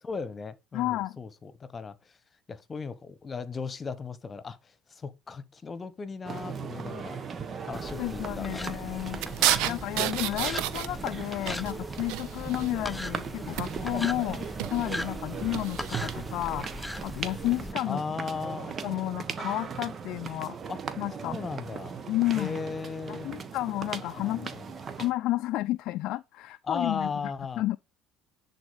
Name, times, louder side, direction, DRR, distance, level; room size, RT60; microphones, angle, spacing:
voice 1, 0.0-1.9 2.5-4.6 4.9-7.2 7.7-8.9 9.6-10.1 12.5-12.7 15.3-15.5 17.8-18.8 20.7-20.8 21.2-22.0 22.3-23.4 24.2-24.6 26.7-27.6, left 5 dB, 30° left, 1.3 m, -37 dB
voice 2, 0.7-1.2 8.0-9.2 9.7-14.5 14.7-16.7 17.0-18.0 18.8-20.6 21.0-21.4 22.1-22.6 23.1-24.5 25.0-27.8, left 16 dB, 65° left, 0.5 m, -31 dB
sound 1, 6.2-25.1, right 6 dB, 40° right, 1.4 m, -38 dB
sound 2, 7.7-17.7, left 1 dB, 10° left, 0.7 m, -39 dB
sound 3, 9.2-11.2 11.5-12.7 13.5-14.0 14.4-14.9 15.5-16.0, right 13 dB, 70° right, 0.8 m, -30 dB
10.5 x 4.3 x 7.0 m
hypercardioid pair, 70°, 0 cm